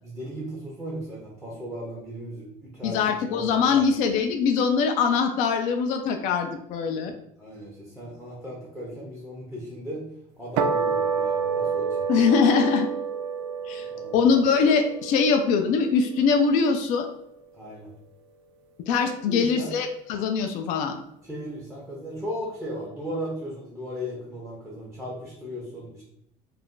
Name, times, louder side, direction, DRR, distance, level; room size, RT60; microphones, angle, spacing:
voice 1, 0.0-3.0 3.3-3.8 7.4-10.1 10.4-12.1 13.9-14.2 17.5-17.9 19.3-19.7 21.2-26.0, equal, ahead, -4 dB, 0.5 m, -36 dB
voice 2, 2.8-7.1 12.1-12.9 13.7-13.9 14.1-17.1 18.9-21.0, left 5 dB, 55° left, 5 dB, 0.4 m, -22 dB
sound 1, 10.6-17.1, right 6 dB, 80° right, 0.4 m, -29 dB
2.4 x 2.2 x 3.6 m, 0.76 s
cardioid pair, 165°, 15 cm